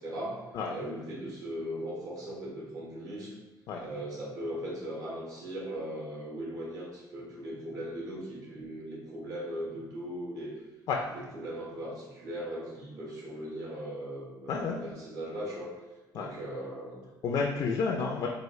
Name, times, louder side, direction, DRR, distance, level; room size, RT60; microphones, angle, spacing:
voice 1, 0.0-0.4 0.7-3.3 3.8-10.5 11.1-15.7 16.1-17.1, equal, 50° right, -4 dB, 1.3 m, -38 dB
voice 2, 14.5-14.8 16.1-16.3 17.2-18.3, left 4 dB, 60° left, 1 dB, 0.4 m, -30 dB
4.7 x 2.4 x 3.1 m, 1.1 s
cardioid pair, 135°, 8 cm